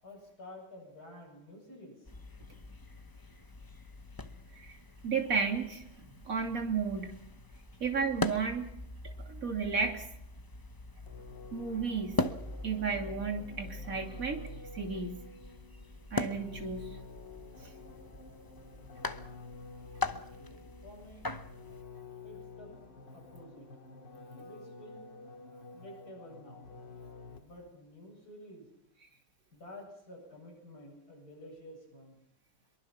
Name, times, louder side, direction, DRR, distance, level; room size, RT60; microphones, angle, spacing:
voice 1, 0.0-2.1 7.7-7.8 20.1-21.3 22.2-22.7 23.1-23.7 24.2-25.2 25.7-26.7 27.3-28.7 29.5-32.2, left 1 dB, 60° left, 0 dB, 8.2 m, -51 dB
sound 1, 2.1-21.8, left 2 dB, 25° left, 0.5 m, -41 dB
voice 2, 5.0-7.2 7.8-8.7 9.3-10.1 11.5-12.2 12.6-14.4 14.7-15.2 16.1-16.8 17.6-17.7, right 5 dB, 50° right, 3 dB, 3.3 m, -33 dB
sound 2, 11.1-27.7, left 3 dB, 90° left, 2.7 m, -50 dB
23.5 x 23.0 x 5.9 m, 0.79 s
omnidirectional pair, 1.9 m